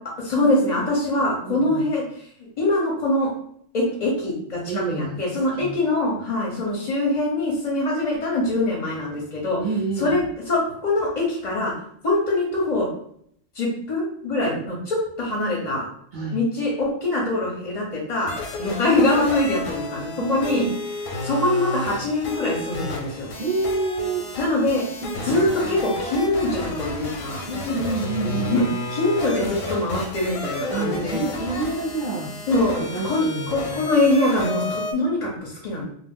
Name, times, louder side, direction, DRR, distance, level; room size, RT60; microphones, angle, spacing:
voice 1, 0.2-2.0 2.4-3.3 3.7-9.6 10.0-10.2 10.5-11.7 12.0-12.9 13.5-15.9 16.3-18.3 18.6-20.6 21.2-23.3 24.4-24.8 25.2-27.4 28.2-31.3 32.5-35.8, left 2 dB, 45° left, -2 dB, 0.5 m, -23 dB
voice 2, 1.5-1.8 4.7-5.2 5.6-5.7 9.6-10.1 16.1-16.4 20.2-20.8 23.4-24.2 25.0-25.4 27.5-28.4 30.7-32.3 32.8-33.9, right 3 dB, 55° right, -4 dB, 0.5 m, -28 dB
sound 1, 18.3-34.9, left 2 dB, 85° left, 1.0 m, -32 dB
2.3 x 2.0 x 3.4 m, 0.66 s
omnidirectional pair, 1.3 m